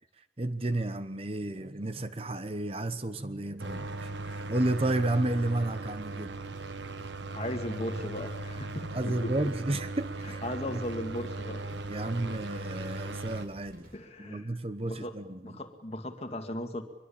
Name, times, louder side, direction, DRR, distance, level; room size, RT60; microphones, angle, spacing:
voice 1, 0.4-6.4 8.9-10.4 11.9-13.9 14.2-15.6, right 2 dB, 30° right, 1.1 m, -32 dB
sound 1, 3.6-13.5, right 2 dB, 80° right, 1.3 m, -38 dB
sound 2, 3.7-14.0, equal, 50° right, 5.9 m, -55 dB
voice 2, 7.3-9.3 10.4-11.6 12.0-12.1 13.9-14.5 14.9-15.2 15.4-16.8, left 1 dB, 35° left, 2.0 m, -37 dB
23.5 x 22.0 x 8.6 m
head